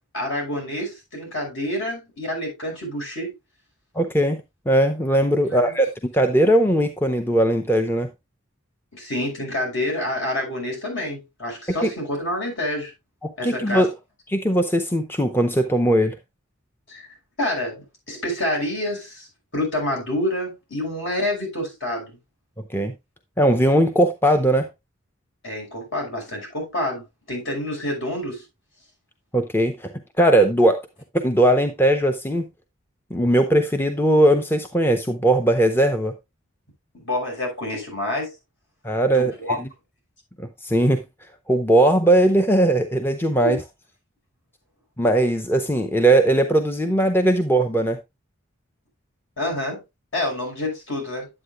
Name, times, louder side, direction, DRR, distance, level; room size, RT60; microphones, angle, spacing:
voice 1, 0.1-3.3 5.5-5.8 8.9-12.9 13.4-13.9 16.9-17.1 17.4-19.3 19.5-22.2 25.4-28.4 36.9-38.3 39.1-39.6 43.4-43.6 49.4-49.8 50.1-51.3, left 1 dB, 65° left, 5.5 m, -28 dB
voice 2, 4.0-5.9 6.1-8.1 11.7-11.9 13.2-13.9 14.3-16.2 22.7-22.9 23.4-24.7 29.3-30.8 31.1-32.5 33.1-36.1 38.8-39.3 39.6-39.7 40.4-41.0 41.5-43.6 45.0-48.0, right 1 dB, 10° left, 0.7 m, -19 dB
9.9 x 8.2 x 2.3 m
head